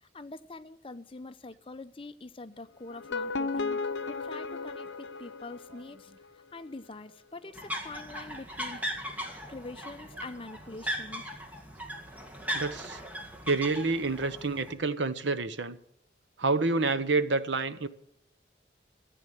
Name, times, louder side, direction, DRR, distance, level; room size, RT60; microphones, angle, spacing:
voice 1, 0.0-3.8 4.1-8.8 9.5-11.3, left 2 dB, 30° left, 0.7 m, -44 dB
sound 1, 2.9-6.0, left 4 dB, 85° left, 0.7 m, -34 dB
sound 2, 7.5-14.7, equal, 10° right, 1.9 m, -38 dB
voice 2, 12.5-13.0 13.5-15.8 16.4-17.9, right 3 dB, 85° right, 1.0 m, -28 dB
14.0 x 8.4 x 9.2 m
head